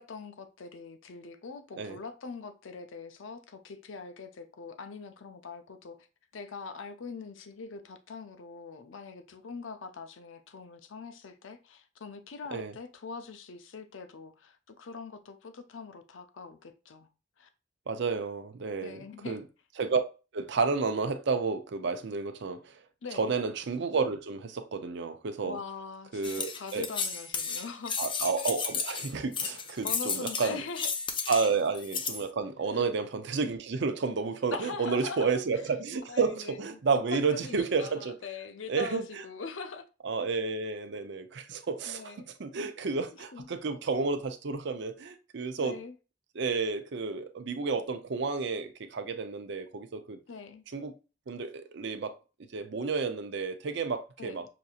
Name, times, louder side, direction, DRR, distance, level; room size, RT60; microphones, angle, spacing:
voice 1, 0.0-6.1 6.3-17.1 17.4-17.5 18.8-19.4 23.0-23.3 25.4-28.3 29.8-30.9 31.2-31.4 32.6-32.8 34.5-35.4 36.1-36.8 37.1-39.9 41.8-42.3 43.1-43.5 45.6-45.9 50.3-50.6 54.2-54.4, left 5 dB, 80° left, 0.6 m, -42 dB
voice 2, 17.9-19.4 19.8-20.0 20.3-22.7 23.1-25.6 26.1-26.9 28.0-30.6 31.3-38.1 38.7-39.0 40.0-42.1 42.4-45.8 46.4-50.2 50.7-50.9 51.3-52.1 52.5-54.5, right 4 dB, 65° right, 0.5 m, -31 dB
sound 1, 26.2-32.3, left 5 dB, 25° left, 0.5 m, -33 dB
5.9 x 2.7 x 2.4 m
head